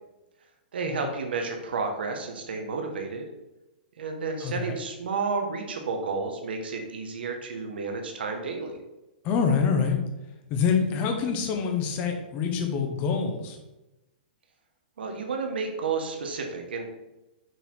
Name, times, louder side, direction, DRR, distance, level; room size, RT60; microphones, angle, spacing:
voice 1, 0.7-3.2 4.0-8.8 15.0-16.8, right 4 dB, 85° right, 3 dB, 1.3 m, -31 dB
voice 2, 4.4-4.8 9.2-10.0 10.5-13.6, left 6 dB, 30° left, 4 dB, 1.1 m, -26 dB
6.7 x 4.2 x 4.6 m, 0.99 s
hypercardioid pair, 155°, 5 cm